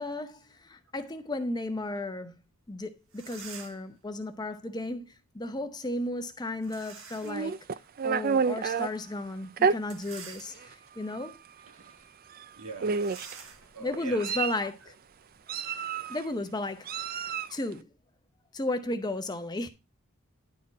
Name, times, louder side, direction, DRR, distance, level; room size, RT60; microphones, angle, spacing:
voice 1, 0.0-2.4 2.7-7.6 8.0-11.4 13.8-14.9 16.1-16.9 17.5-17.9 18.5-19.7, left 2 dB, 20° left, 0.7 m, -34 dB
sound 1, 2.7-2.8 3.1-3.9 6.6-7.5 8.0-8.1 9.8-10.9 11.5-11.7 11.9-12.1 12.9-15.4, right 6 dB, 65° right, 1.3 m, -48 dB
Meow, 7.2-8.9 9.6-9.8 10.6-10.7 11.1-11.3 12.3-12.4 12.8-13.3 13.9-14.7 15.5-16.2 16.9-17.6, right 5 dB, 40° right, 0.4 m, -29 dB
voice 2, 11.6-12.1 12.5-14.5 14.8-14.9, right 4 dB, 85° right, 1.6 m, -45 dB
11.0 x 4.5 x 4.0 m
head